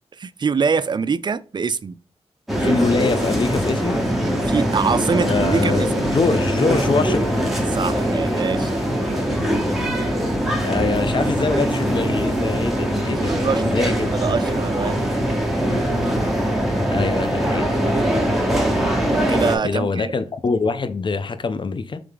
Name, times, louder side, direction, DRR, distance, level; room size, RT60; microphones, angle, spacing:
voice 1, 0.2-2.0 4.5-6.1 7.7-8.7 9.2-9.4 13.2-15.0 19.3-20.1, right 5 dB, 40° right, 0.3 m, -24 dB
sound 1, 2.5-19.6, equal, ahead, 1.1 m, -22 dB
voice 2, 2.6-4.0 5.2-7.6 10.6-13.3 13.7-14.1 16.9-18.0 19.6-22.0, left 4 dB, 45° left, 0.5 m, -24 dB
3.6 x 3.3 x 3.4 m
cardioid pair, 60°, 11 cm